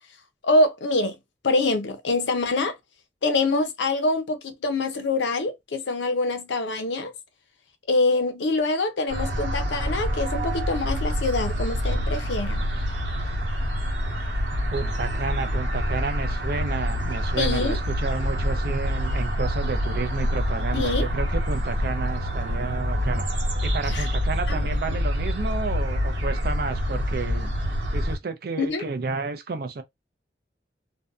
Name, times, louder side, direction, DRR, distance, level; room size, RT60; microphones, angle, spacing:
voice 1, 0.4-1.2 1.4-2.7 3.2-7.1 7.9-12.6 17.4-17.8 20.7-21.1 23.9-24.1 24.5-24.6 28.6-28.8, left 2 dB, 75° left, 0.6 m, -25 dB
sound 1, 9.1-28.2, equal, 90° right, 1.0 m, -26 dB
voice 2, 14.7-23.2 23.6-27.5 27.9-29.8, right 4 dB, 55° right, 0.5 m, -31 dB
2.6 x 2.2 x 2.3 m
head